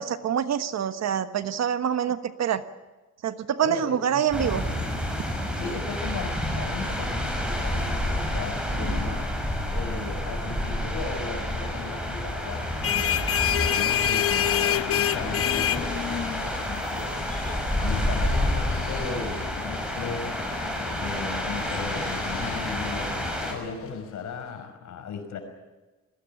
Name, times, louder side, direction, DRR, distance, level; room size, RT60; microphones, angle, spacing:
voice 1, 0.0-2.6 3.2-4.6, right 9 dB, 60° right, 11 dB, 1.3 m, -26 dB
voice 2, 3.6-4.2 5.5-9.2 9.7-17.1 17.8-20.3 20.9-25.4, left 5 dB, 70° left, 6 dB, 5.5 m, -36 dB
sound 1, 4.3-23.5, equal, 5° right, 6.5 m, -29 dB
sound 2, 12.6-23.9, left 11 dB, 50° left, 0.9 m, -29 dB
21.5 x 17.0 x 10.0 m, 1.2 s
cardioid pair, 90°, 30 cm